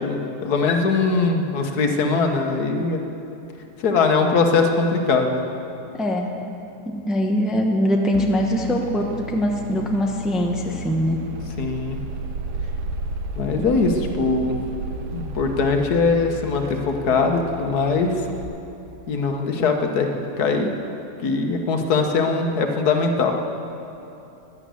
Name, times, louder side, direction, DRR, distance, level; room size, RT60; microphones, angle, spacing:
voice 1, 0.0-3.0 3.8-5.4 11.6-12.0 13.4-14.6 15.1-18.1 19.1-20.1 20.4-20.7 21.2-23.3, left 4 dB, 75° left, 4 dB, 1.6 m, -21 dB
voice 2, 5.9-6.3 6.8-11.2 13.6-13.8, equal, ahead, 1 dB, 0.8 m, -22 dB
sound 1, 8.1-18.4, right 1 dB, 90° right, 1.4 m, -33 dB
12.5 x 10.5 x 8.2 m, 2.8 s
omnidirectional pair, 1.7 m